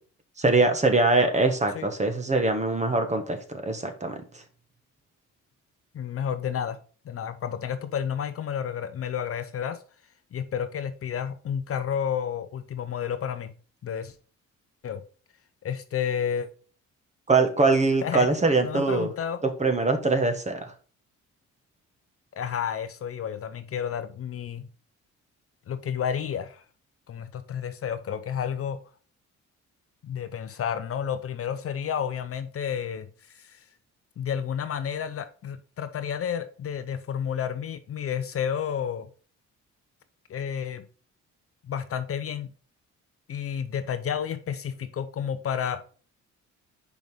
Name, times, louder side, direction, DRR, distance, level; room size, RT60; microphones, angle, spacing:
voice 1, 0.4-3.4 3.6-4.4 17.3-19.1 19.6-20.6, right 3 dB, 25° right, 6 dB, 1.4 m, -23 dB
voice 2, 5.9-6.8 7.0-9.8 10.3-13.5 13.8-14.1 14.8-15.0 15.6-16.5 18.0-18.3 18.6-19.4 22.3-24.7 25.7-26.6 27.1-28.8 30.0-33.6 34.2-39.1 40.3-40.9 41.6-42.5 43.3-45.8, left 8 dB, 50° left, 11 dB, 0.7 m, -31 dB
5.3 x 4.7 x 5.2 m, 0.40 s
cardioid pair, 90°, 30 cm